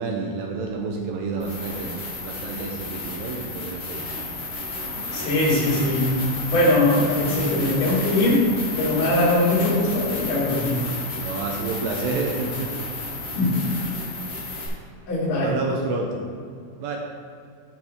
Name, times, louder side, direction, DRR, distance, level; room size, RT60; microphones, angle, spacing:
voice 1, 0.0-4.1 11.2-12.7 15.4-16.2 16.8-17.0, right 3 dB, 80° right, 1 dB, 2.1 m, -29 dB
sound 1, 1.4-14.7, left 2 dB, 30° left, 1.1 m, -32 dB
voice 2, 5.1-6.1 6.5-8.5 8.8-10.8 13.4-13.6 15.1-15.5, left 1 dB, 55° left, -5 dB, 3.2 m, -21 dB
8.9 x 8.1 x 3.6 m, 2.3 s
omnidirectional pair, 4.8 m